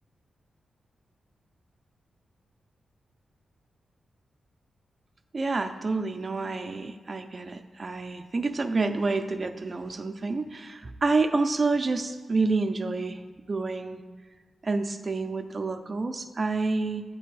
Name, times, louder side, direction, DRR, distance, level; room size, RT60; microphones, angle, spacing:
voice 1, 5.3-13.2 13.5-14.0 14.6-17.0, right 3 dB, 35° right, 8 dB, 0.4 m, -28 dB
8.0 x 3.4 x 4.6 m, 1.5 s
wide cardioid pair, 110°, 0 cm